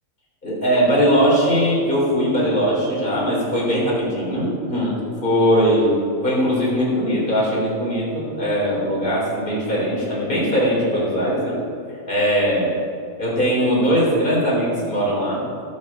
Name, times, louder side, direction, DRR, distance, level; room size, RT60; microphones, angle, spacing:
voice 1, 0.4-5.9 6.2-11.6 12.1-12.7 13.2-15.4, equal, 35° left, -5 dB, 3.8 m, -20 dB
18.0 x 6.7 x 4.9 m, 2.3 s
omnidirectional pair, 1.4 m